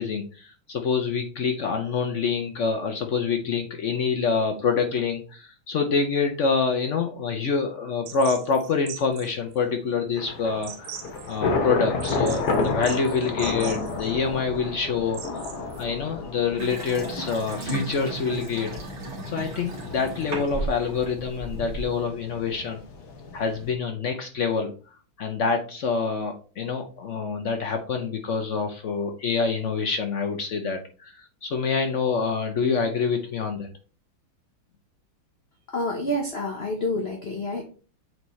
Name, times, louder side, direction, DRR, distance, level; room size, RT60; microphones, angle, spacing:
voice 1, 0.0-10.9 11.3-15.2 15.8-18.7 19.2-22.8 23.3-24.7 25.2-33.7, left 5 dB, 75° left, 4 dB, 0.6 m, -26 dB
sound 1, 8.1-15.8, right 8 dB, 85° right, 1.6 m, -42 dB
Thunder / Rain, 10.2-23.7, left 3 dB, 60° left, 1.4 m, -32 dB
Water tap faucet / Sink (filling or washing) / Bathtub (filling or washing), 16.6-22.0, right 2 dB, 55° right, 2.5 m, -35 dB
voice 2, 35.7-37.6, left 1 dB, 40° left, 1 dB, 1.0 m, -28 dB
8.1 x 4.1 x 3.1 m, 0.37 s
omnidirectional pair, 2.2 m